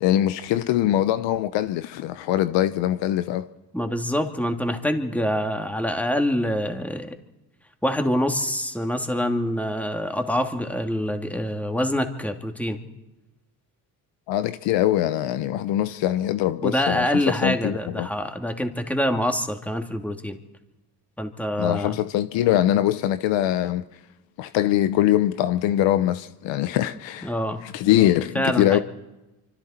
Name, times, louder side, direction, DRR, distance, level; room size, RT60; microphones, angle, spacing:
voice 1, 0.0-3.5 14.3-17.1 17.4-18.1 21.6-23.8 24.4-27.3 27.6-28.8, left 13 dB, 75° left, 0.9 m, -22 dB
voice 2, 3.7-7.1 7.8-12.9 16.6-20.4 21.2-22.0 27.2-27.6 28.3-28.8, equal, 5° left, 2.5 m, -25 dB
26.0 x 25.5 x 4.4 m
supercardioid pair, 65°, 45 cm